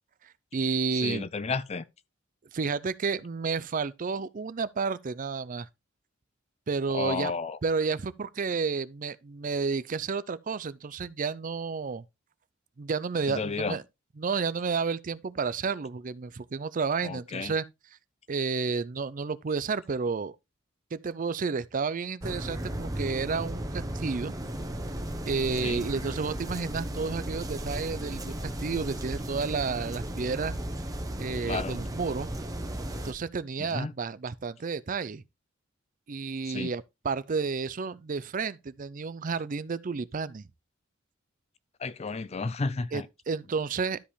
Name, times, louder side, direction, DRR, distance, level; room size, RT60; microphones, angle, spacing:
voice 1, 0.2-1.3 2.5-5.7 6.7-7.3 7.6-12.0 12.8-13.8 14.2-17.6 18.3-20.3 20.9-24.3 25.3-30.5 31.2-32.3 33.0-35.2 36.1-40.4 42.9-44.0, right 5 dB, 40° right, 0.5 m, -31 dB
voice 2, 0.9-1.8 6.9-7.6 13.3-13.8 17.0-17.5 25.6-25.8 31.4-31.8 33.6-33.9 36.4-36.7 41.8-43.1, left 4 dB, 30° left, 0.5 m, -32 dB
sound 1, 22.2-33.1, right 1 dB, 20° right, 1.0 m, -35 dB
12.5 x 5.2 x 3.2 m
head